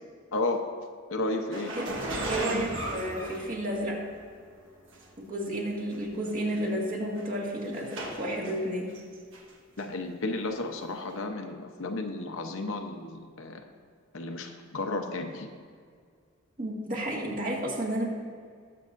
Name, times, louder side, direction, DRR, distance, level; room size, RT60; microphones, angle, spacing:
voice 1, 0.3-0.6 1.1-1.7 9.8-13.6 14.1-15.5, left 2 dB, 80° left, 4 dB, 0.9 m, -33 dB
sound 1, 1.5-4.1 4.9-5.0 5.9-6.0 6.3-6.6 7.2-8.5 8.9-9.5 9.8-9.9 11.1-11.2, right 1 dB, 65° right, 1.5 m, -35 dB
voice 2, 2.3-4.0 5.2-9.0 16.6-18.1, right 1 dB, 40° right, -3 dB, 2.0 m, -32 dB
19.5 x 6.9 x 2.6 m, 2.1 s
head